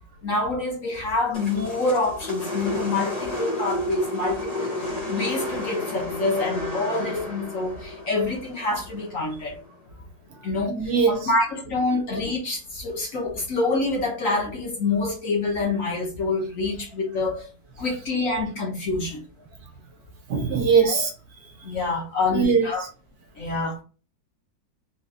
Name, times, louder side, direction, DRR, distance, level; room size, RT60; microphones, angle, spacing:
voice 1, 0.2-9.6 10.4-10.8 11.1-17.5 17.8-19.2 20.8-21.1 21.6-22.8 23.4-23.8, left 3 dB, 55° left, 1.3 m, -26 dB
sound 1, 1.3-9.6, left 1 dB, 25° left, 1.2 m, -31 dB
voice 2, 10.7-11.2 20.3-21.1 22.3-22.7, right 5 dB, 60° right, 1.3 m, -20 dB
3.7 x 2.8 x 2.4 m
omnidirectional pair, 1.9 m